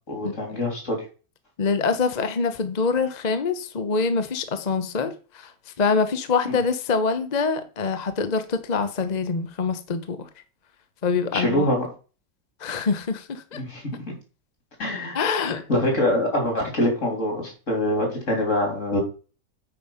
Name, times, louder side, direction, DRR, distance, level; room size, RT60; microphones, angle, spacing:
voice 1, 0.1-1.0 6.5-6.6 11.3-11.8 13.5-13.8 14.8-15.2 15.7-19.0, left 1 dB, 55° left, 3.6 m, -24 dB
voice 2, 1.6-5.5 5.8-10.3 11.0-11.7 12.6-13.6 15.1-15.6, left 4 dB, 35° left, 0.9 m, -25 dB
8.9 x 5.4 x 5.6 m
omnidirectional pair, 1.6 m